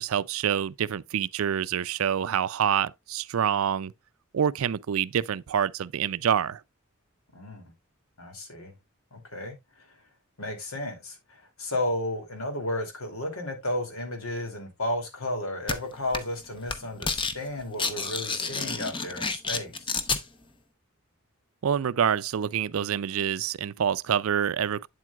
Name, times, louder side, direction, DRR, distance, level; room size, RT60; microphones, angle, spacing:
voice 1, 0.0-3.9 4.3-6.6 21.6-24.9, right 8 dB, 75° right, 0.4 m, -26 dB
voice 2, 7.3-7.6 8.2-8.7 9.1-10.0 10.4-19.9, left 1 dB, 80° left, 2.7 m, -33 dB
sound 1, 15.7-15.8 16.1-16.4 16.7-17.3 17.6-20.2, left 4 dB, 25° left, 0.8 m, -29 dB
8.6 x 7.6 x 2.3 m
head